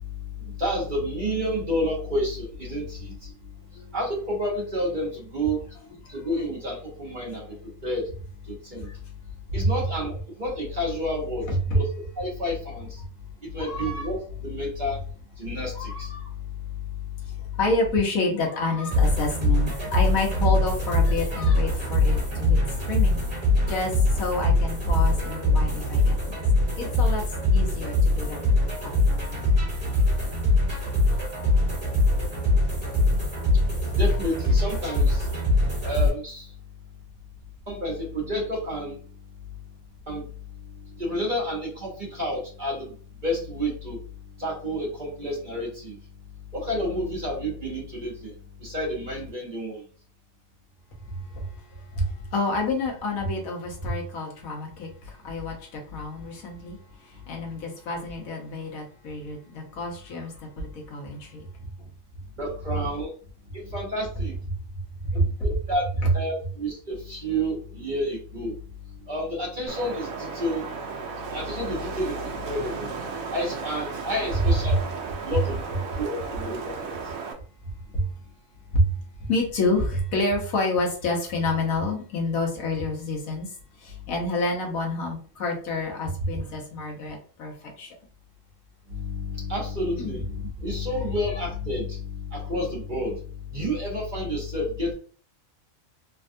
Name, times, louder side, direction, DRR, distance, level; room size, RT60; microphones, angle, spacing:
voice 1, 0.4-3.3 3.9-5.6 6.1-7.4 7.8-8.1 8.5-8.9 9.5-10.1 10.4-11.5 11.7-11.9 12.2-13.0 13.5-15.0 15.4-16.1 34.0-35.2 35.8-36.5 37.7-39.0 40.1-40.3 41.0-42.9 43.2-44.0 44.4-46.0 46.5-48.3 48.6-49.8 62.4-63.1 63.5-64.3 65.1-68.5 69.1-70.6 71.3-72.9 73.3-74.8 75.2-75.5 76.0-76.9 88.9-93.2 93.5-94.9, equal, 40° right, -3 dB, 1.0 m, -30 dB
voice 2, 11.5-11.8 13.6-14.1 15.7-16.3 17.3-23.2 23.7-26.4 26.8-27.2 27.5-28.4 28.8-29.4 51.1-61.5 61.8-61.9 65.0-65.3 74.6-74.8 76.7-76.8 77.9-78.1 78.7-78.9 79.2-83.5 83.8-87.9 90.0-90.2 90.9-91.0, left 2 dB, 85° left, 0 dB, 1.3 m, -28 dB
sound 1, 18.9-36.1, left 2 dB, 20° right, 1.4 m, -23 dB
Wind, 69.7-77.3, right 5 dB, 80° right, 1.0 m, -35 dB
3.3 x 2.3 x 2.6 m, 0.43 s
omnidirectional pair, 1.4 m